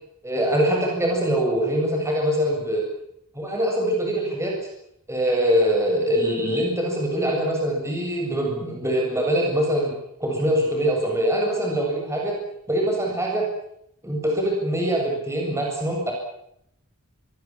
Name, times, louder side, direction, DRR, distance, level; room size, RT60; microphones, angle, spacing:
voice 1, 0.2-2.8 3.3-4.5 5.1-9.9 10.2-12.3 12.7-13.4 14.0-16.1, equal, 15° right, -1 dB, 7.7 m, -23 dB
25.0 x 22.0 x 7.5 m, 0.74 s
head